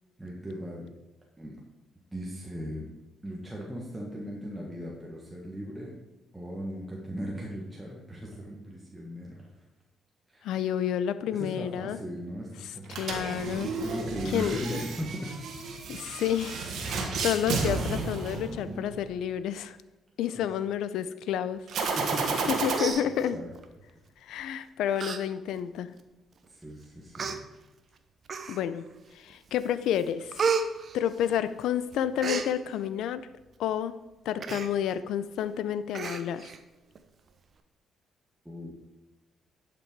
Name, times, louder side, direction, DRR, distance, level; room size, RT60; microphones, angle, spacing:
voice 1, 0.2-0.9 1.4-1.6 2.1-2.9 3.2-5.9 6.3-9.4 10.3-10.5 11.3-13.1 13.8-15.3 20.4-20.5 21.9-22.5 23.3-23.5 26.5-27.4 38.5-38.7, equal, 10° right, -3 dB, 1.7 m, -38 dB
voice 2, 10.4-12.0 12.9-13.7 14.3-14.8 15.9-19.8 20.2-21.6 22.5-23.4 24.2-25.9 28.5-28.8 29.1-30.3 30.9-33.2 33.6-33.9 34.3-36.5, left 9 dB, 85° left, 14 dB, 0.5 m, -30 dB
sound 1, 12.9-19.0 21.7-22.8, right 4 dB, 70° right, 1.7 m, -32 dB
Human voice, 22.3-22.5 22.7-23.6 24.4-24.6 25.0-25.2 25.6-25.7 26.5-26.6 27.1-27.4 28.3-28.8 29.3-29.7 29.9-31.6 31.9-32.5 34.4-34.7 35.1-35.2 35.4-35.6 35.9-36.6 37.0-37.1, right 5 dB, 50° right, 0.8 m, -32 dB
11.0 x 6.1 x 4.7 m, 1.0 s
cardioid pair, 90°, 0 cm